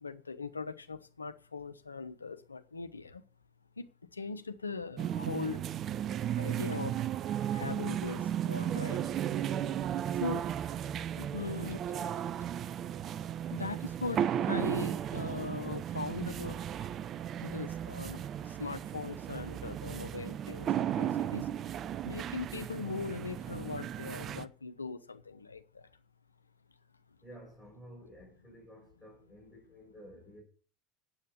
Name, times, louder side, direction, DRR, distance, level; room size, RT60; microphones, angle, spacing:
voice 1, 0.0-3.2 3.8-3.9 4.1-5.8 6.3-9.0 10.2-10.5 11.1-11.8 13.4-16.6 17.4-21.5 22.0-25.9, left 4 dB, 90° left, 0.8 m, -40 dB
sound 1, 5.0-24.4, right 10 dB, 40° right, 0.6 m, -35 dB
voice 2, 27.2-30.4, equal, 10° left, 5.5 m, -52 dB
8.8 x 7.9 x 8.0 m
figure-of-eight pair, 75°, 0 cm